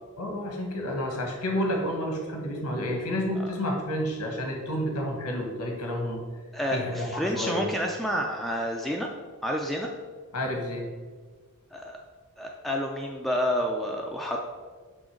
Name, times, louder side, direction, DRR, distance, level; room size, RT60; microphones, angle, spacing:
voice 1, 0.2-6.2 6.7-7.7 10.3-10.9, equal, 90° left, 1 dB, 1.5 m, -30 dB
voice 2, 6.5-9.1 9.4-9.9 11.7-12.0 12.4-14.4, equal, ahead, 0 dB, 0.4 m, -29 dB
6.2 x 3.7 x 5.1 m, 1.5 s
head